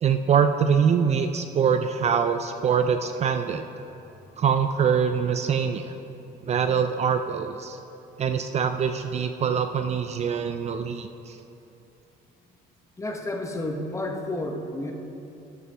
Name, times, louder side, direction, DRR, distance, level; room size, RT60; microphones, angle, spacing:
voice 1, 0.0-3.6 4.4-5.9 6.4-7.8 8.2-11.4, right 7 dB, 40° right, 8 dB, 0.4 m, -24 dB
voice 2, 13.0-14.9, left 1 dB, 15° left, 3 dB, 1.1 m, -31 dB
12.5 x 11.0 x 3.4 m, 2.9 s
cardioid pair, 110°, 17 cm